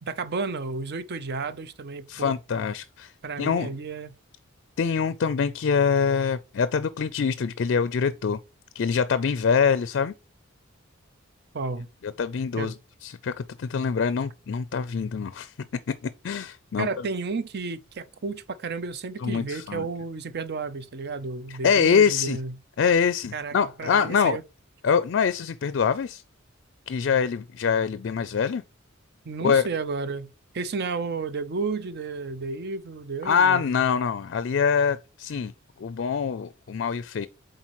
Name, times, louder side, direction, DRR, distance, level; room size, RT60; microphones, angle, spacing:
voice 1, 0.0-2.3 3.2-4.1 11.5-11.9 12.6-12.7 16.8-22.5 23.3-24.4 29.2-33.6, right 4 dB, 55° right, 0.6 m, -32 dB
voice 2, 2.1-3.1 3.4-3.7 4.8-8.4 8.7-10.1 12.0-12.7 13.0-15.5 15.9-16.9 19.2-19.9 21.6-22.4 22.8-24.4 24.8-26.2 26.9-28.6 29.4-29.6 33.2-35.5 35.8-37.3, left 6 dB, 60° left, 0.4 m, -24 dB
8.2 x 3.9 x 3.0 m
head